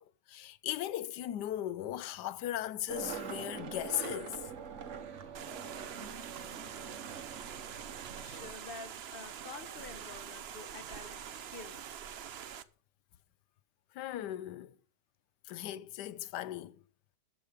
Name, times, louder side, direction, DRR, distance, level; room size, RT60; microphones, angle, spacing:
voice 1, 0.0-4.4 13.9-14.7 15.4-16.8, left 13 dB, 75° left, 1.1 m, -38 dB
Skateboard, 2.9-8.5, right 6 dB, 50° right, 1.0 m, -44 dB
sound 1, 5.3-12.6, right 9 dB, 75° right, 0.5 m, -45 dB
voice 2, 7.6-11.2 11.5-11.8, left 4 dB, 40° left, 1.0 m, -49 dB
13.0 x 5.4 x 4.9 m
omnidirectional pair, 1.9 m